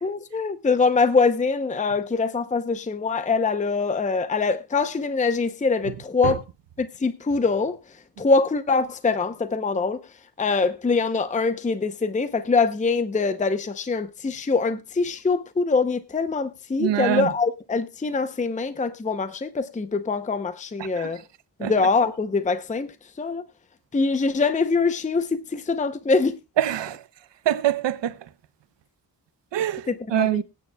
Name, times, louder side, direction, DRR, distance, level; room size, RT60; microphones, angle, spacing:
voice 1, 0.0-6.4 6.8-7.8 8.2-10.0 10.4-21.2 21.6-23.4 23.9-26.4 29.9-30.4, left 4 dB, 20° left, 0.6 m, -23 dB
voice 2, 16.8-17.3 21.0-21.1 21.6-21.7 26.6-27.0 27.5-28.2 29.5-30.4, right 11 dB, 80° right, 0.7 m, -24 dB
23.5 x 9.3 x 2.2 m
wide cardioid pair, 120°, 43 cm